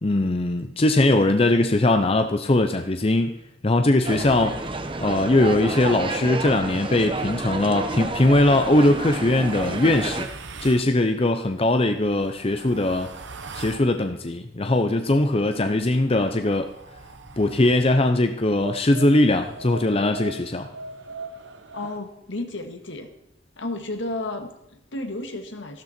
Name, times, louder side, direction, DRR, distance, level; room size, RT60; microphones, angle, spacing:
voice 1, 0.0-4.7 5.0-10.3 10.6-13.1 13.5-16.7 17.4-20.7, left 2 dB, 30° left, 7 dB, 0.7 m, -20 dB
sound 1, 4.0-10.3, right 2 dB, 25° right, 1.0 m, -30 dB
sound 2, 8.5-10.9 11.8-13.9 15.5-17.9 18.6-22.0, right 3 dB, 70° right, 1.1 m, -41 dB
voice 2, 21.7-23.1 23.6-25.8, left 2 dB, 70° left, 5 dB, 1.8 m, -32 dB
14.5 x 12.5 x 4.4 m, 0.82 s
head